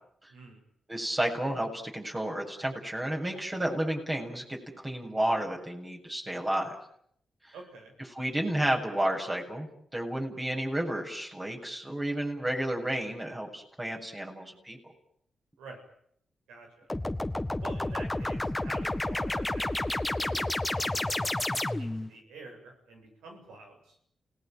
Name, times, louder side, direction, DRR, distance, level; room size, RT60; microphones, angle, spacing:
voice 1, 0.3-0.6 7.5-7.9 15.6-15.8 16.5-16.9 17.6-24.0, right 3 dB, 90° right, 2 dB, 7.5 m, -48 dB
voice 2, 0.9-4.6 4.8-6.7 7.5-7.6 8.1-14.8, right 1 dB, 25° right, 1 dB, 7.5 m, -31 dB
sound 1, 16.9-22.1, left 1 dB, 15° left, 1.7 m, -30 dB
29.0 x 18.5 x 9.3 m, 0.70 s
supercardioid pair, 45°, 0 cm